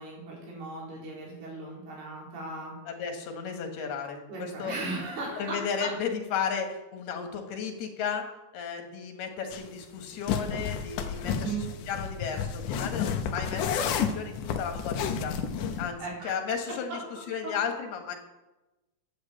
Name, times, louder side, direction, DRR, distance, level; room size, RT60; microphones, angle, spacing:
voice 1, 0.0-2.7 4.3-5.9 11.2-11.7 15.7-16.3 16.7-17.1 17.4-17.5, right 3 dB, 85° right, -3 dB, 6.4 m, -37 dB
voice 2, 2.9-4.8 5.4-8.3 8.5-11.6 11.9-15.4 15.8-17.0 17.3-18.2, left 6 dB, 85° left, 4 dB, 3.9 m, -34 dB
sound 1, 9.5-9.6 10.3-15.9, left 7 dB, 70° left, 2.2 m, -31 dB
12.0 x 9.6 x 8.1 m, 1.0 s
omnidirectional pair, 4.4 m